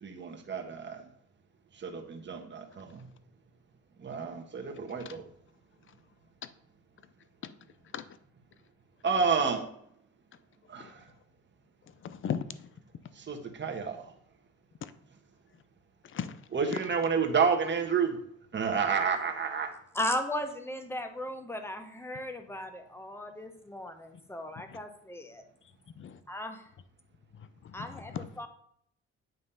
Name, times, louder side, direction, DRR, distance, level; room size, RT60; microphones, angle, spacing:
voice 1, 0.0-1.0 1.8-3.0 4.0-5.2 9.0-9.7 10.7-11.0 13.2-14.0 16.5-18.2 18.5-19.7, right 5 dB, 35° right, 4 dB, 1.4 m, -30 dB
voice 2, 12.0-12.7 14.8-14.9 16.0-16.4 24.7-24.8 26.0-26.2 27.4-28.3, left 8 dB, 40° left, 13 dB, 0.6 m, -38 dB
voice 3, 19.9-25.4 26.3-26.6 27.7-28.5, left 1 dB, 10° left, 6 dB, 1.1 m, -36 dB
9.4 x 3.2 x 5.6 m, 0.68 s
cardioid pair, 90°, 30 cm